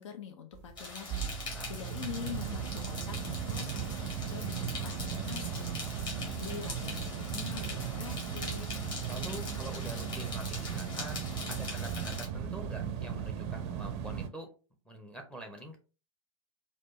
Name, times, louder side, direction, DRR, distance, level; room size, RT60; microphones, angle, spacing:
voice 1, 0.0-8.7, left 8 dB, 60° left, 7 dB, 0.6 m, -45 dB
sound 1, 0.5-14.3, right 8 dB, 35° right, 0.5 m, -37 dB
sound 2, 0.8-12.3, left 3 dB, 25° left, 1.6 m, -42 dB
voice 2, 9.1-14.5 14.9-15.8, right 1 dB, 5° left, 4 dB, 0.7 m, -45 dB
4.2 x 2.4 x 3.0 m, 0.34 s
figure-of-eight pair, 100°, 18 cm